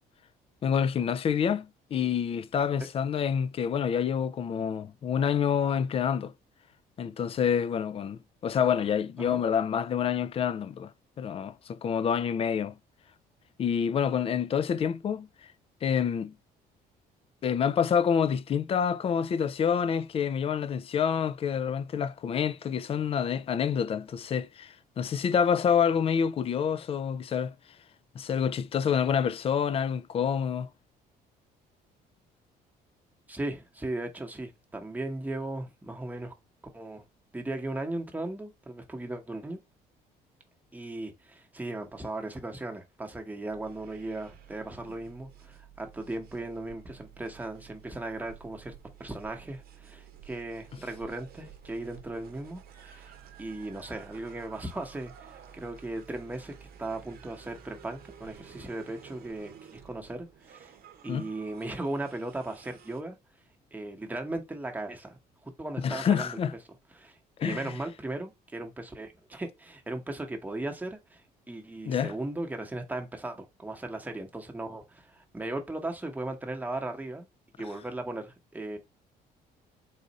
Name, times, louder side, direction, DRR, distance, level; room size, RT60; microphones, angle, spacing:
voice 1, 0.6-6.3 7.0-10.9 11.2-12.7 13.6-15.3 15.8-16.3 17.4-27.5 28.2-30.7 61.1-61.3 65.8-66.5 67.4-67.7 71.9-72.1, left 7 dB, 35° left, 0.3 m, -27 dB
voice 2, 33.3-36.3 36.7-37.0 37.3-39.6 40.7-53.1 53.4-60.7 61.0-63.2 63.7-66.4 66.9-71.2 71.5-77.3 77.6-78.8, right 2 dB, 10° right, 1.0 m, -37 dB
sound 1, 43.5-63.0, right 9 dB, 65° right, 0.8 m, -52 dB
4.0 x 2.5 x 4.0 m
cardioid pair, 110°, 17 cm